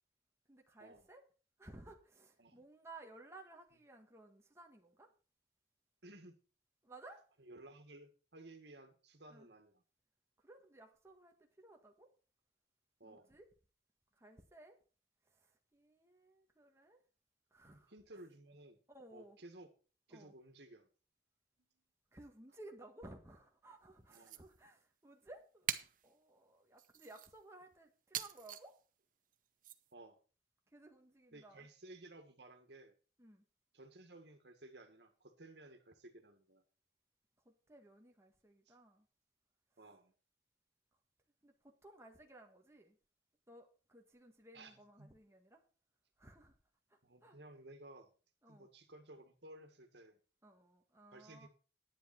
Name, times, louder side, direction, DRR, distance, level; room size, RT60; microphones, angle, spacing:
voice 1, 0.5-1.2 1.6-5.1 6.8-7.2 9.3-9.5 10.4-12.1 13.0-13.4 14.1-14.8 15.3-17.0 17.5-17.9 18.9-19.4 20.1-20.3 22.1-28.8 30.7-31.7 33.2-33.4 37.4-39.1 41.4-43.0 43.5-45.6 46.2-46.6 46.9-47.4 48.4-48.7 50.4-51.5, right 2 dB, 15° right, 2 dB, 1.5 m, -58 dB
voice 2, 6.0-6.4 7.4-9.8 13.0-13.3 17.7-18.8 19.1-19.7 20.1-20.9 24.1-24.5 29.9-30.2 31.3-32.9 33.7-36.6 38.7-38.8 39.8-40.1 44.5-45.1 47.0-48.1 48.5-50.2 51.1-51.5, right 2 dB, 70° right, 6 dB, 1.9 m, -56 dB
sound 1, 24.1-24.4 25.7-26.1 26.8-27.3 28.1-28.7 29.6-29.8, right 10 dB, 50° right, 0.8 m, -42 dB
10.5 x 10.0 x 4.4 m, 0.36 s
head